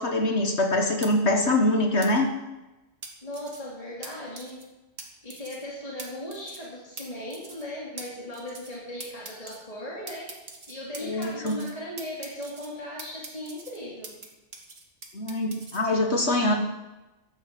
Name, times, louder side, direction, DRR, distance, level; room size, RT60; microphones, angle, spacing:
voice 1, 0.0-2.3 11.0-11.6 15.1-16.5, left 1 dB, 55° left, 3 dB, 1.8 m, -24 dB
sound 1, 1.0-1.1 2.0-2.1 3.0-3.6 4.0-4.1 4.4-4.6 5.0-5.1 5.3-5.6 6.0-6.1 6.3-6.7 7.0-7.1 7.3-7.6 8.0-8.1 8.3-8.8 9.0-9.6 10.1-11.7 12.0-12.7 13.0-14.3 14.5-15.8, right 4 dB, 70° right, 2.3 m, -42 dB
voice 2, 3.2-4.6 5.2-10.3 10.7-14.1, left 1 dB, 25° left, -5 dB, 3.0 m, -37 dB
13.5 x 9.4 x 7.7 m, 1.0 s
omnidirectional pair, 1.4 m